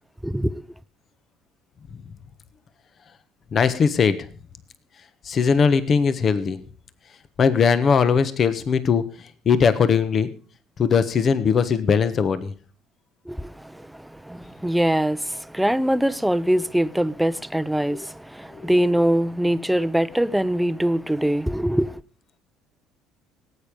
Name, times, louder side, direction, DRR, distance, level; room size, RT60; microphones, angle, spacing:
voice 1, 0.2-0.6 13.3-22.0, right 1 dB, 5° right, 0.8 m, -23 dB
voice 2, 3.5-4.2 5.2-6.6 7.4-9.0 9.4-10.3 10.8-12.5 17.9-18.0 18.6-18.7, left 6 dB, 45° left, 1.3 m, -19 dB
18.5 x 8.9 x 5.3 m
hypercardioid pair, 60°, 0 cm